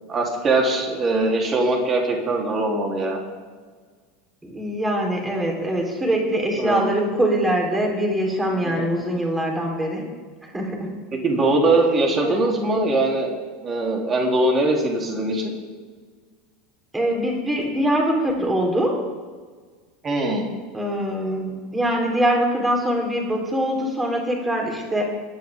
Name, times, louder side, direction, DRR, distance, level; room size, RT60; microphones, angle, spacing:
voice 1, 0.1-3.2 6.6-6.8 8.8-8.9 11.2-13.3 13.6-15.5 20.0-20.5, right 2 dB, 30° right, 0 dB, 3.9 m, -21 dB
voice 2, 4.4-10.1 10.4-11.0 12.2-12.4 16.9-19.0 20.7-25.0, right 1 dB, 10° right, 0 dB, 4.3 m, -23 dB
23.5 x 10.0 x 3.9 m, 1.5 s
figure-of-eight pair, 80°, 0 cm